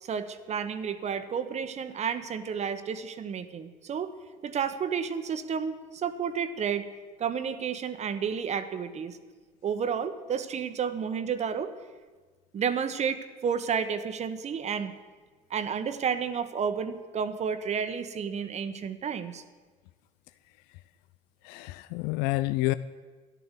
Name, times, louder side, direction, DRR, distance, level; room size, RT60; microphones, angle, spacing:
voice 1, 0.0-4.1 4.4-6.9 7.2-9.2 9.6-11.7 12.5-14.9 15.5-19.4, right 7 dB, 40° right, 11 dB, 1.2 m, -31 dB
voice 2, 21.4-22.7, left 19 dB, 75° left, 15 dB, 0.5 m, -28 dB
13.5 x 11.0 x 8.3 m, 1.4 s
supercardioid pair, 85°, 17 cm